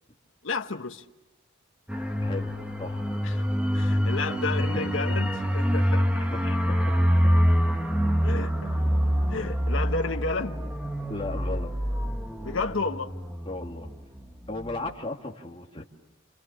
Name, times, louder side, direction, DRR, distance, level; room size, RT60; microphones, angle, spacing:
voice 1, 0.4-1.0 3.2-3.5 3.7-6.3 8.2-8.7 9.3-10.6 12.4-13.1, left 3 dB, 75° left, 1.3 m, -31 dB
sound 1, 1.9-14.2 14.5-14.7, equal, 5° right, 1.8 m, -26 dB
voice 2, 2.2-2.5 2.8-3.1 4.3-4.4 4.7-5.0 6.3-6.8 11.1-11.7 13.5-13.9 14.5-15.8, left 2 dB, 25° left, 2.3 m, -35 dB
29.0 x 29.0 x 7.1 m
head